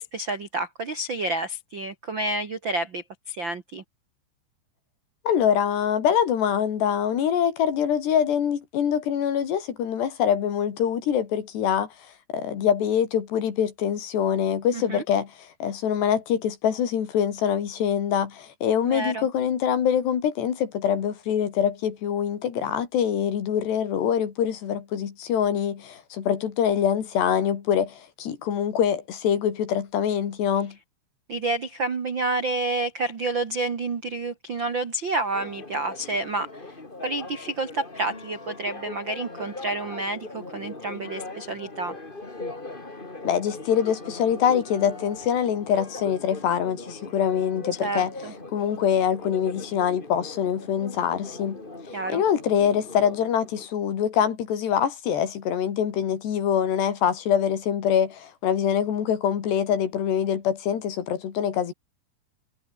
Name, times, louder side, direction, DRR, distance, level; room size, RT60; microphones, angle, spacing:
voice 1, 0.0-3.8 14.7-15.0 18.8-19.3 31.3-36.8 37.0-41.9 47.8-48.3 51.9-52.2, right 2 dB, 65° right, 1.1 m, -29 dB
voice 2, 5.2-11.9 12.3-15.3 15.6-30.8 43.2-48.1 48.5-51.6 52.1-61.7, left 8 dB, 65° left, 4.8 m, -24 dB
Church bell, 35.3-53.7, left 2 dB, 15° left, 1.9 m, -40 dB
omnidirectional pair, 5.4 m